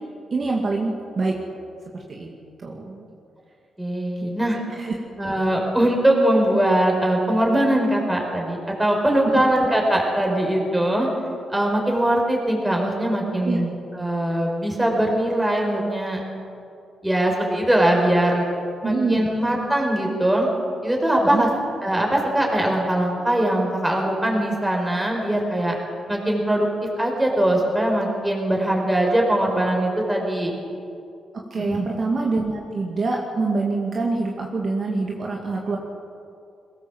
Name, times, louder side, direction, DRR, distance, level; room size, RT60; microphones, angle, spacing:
voice 1, 0.3-1.3 1.9-2.3 2.6-3.0 4.2-4.9 9.3-9.4 13.4-13.6 18.8-19.2 21.2-21.4 31.5-35.8, right 3 dB, 40° right, -1 dB, 2.4 m, -25 dB
voice 2, 3.8-4.6 5.2-11.1 11.5-13.7 13.9-16.2 17.0-18.4 18.8-20.5 20.8-21.5 21.8-25.8 26.1-26.7 27.0-30.5 31.5-31.8, right 1 dB, 5° right, 0 dB, 5.1 m, -21 dB
22.0 x 18.5 x 7.5 m, 2.5 s
cardioid pair, 120°, 0 cm